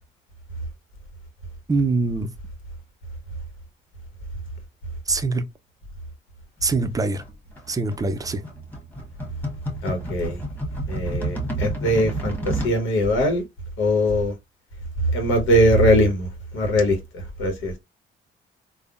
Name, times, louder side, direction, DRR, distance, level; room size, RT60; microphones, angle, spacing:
voice 1, 1.7-2.3 5.1-5.4 6.6-7.2 7.7-8.4, right 3 dB, 20° right, 0.4 m, -23 dB
sound 1, 7.1-12.8, right 1 dB, 10° left, 1.2 m, -31 dB
voice 2, 9.8-10.4 10.9-12.3 12.6-13.4 13.8-14.3 15.1-16.3 16.5-17.0 17.4-17.8, equal, 80° left, 1.0 m, -20 dB
3.4 x 2.0 x 2.4 m
cardioid pair, 90°, 20 cm